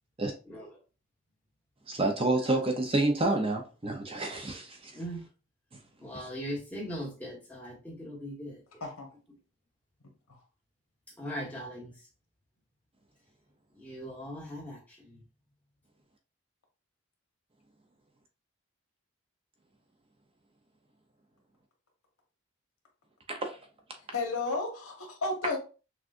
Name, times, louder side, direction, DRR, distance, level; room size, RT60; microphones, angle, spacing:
voice 1, 1.9-5.0 23.3-23.6, right 2 dB, 25° right, 0.6 m, -29 dB
voice 2, 6.0-8.6 11.2-11.9 13.8-15.2, equal, 5° left, 1.3 m, -39 dB
voice 3, 24.1-25.6, left 3 dB, 80° left, 1.3 m, -33 dB
6.1 x 2.4 x 2.5 m
head